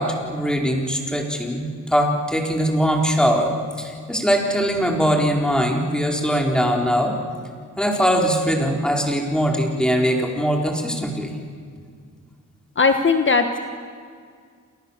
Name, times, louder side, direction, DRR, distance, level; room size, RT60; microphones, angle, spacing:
voice 1, 0.0-7.1 7.8-11.3, equal, ahead, 1 dB, 4.3 m, -21 dB
voice 2, 12.8-13.6, left 4 dB, 40° left, 6 dB, 1.4 m, -18 dB
30.0 x 27.5 x 7.3 m, 2.1 s
wide cardioid pair, 130°, 32 cm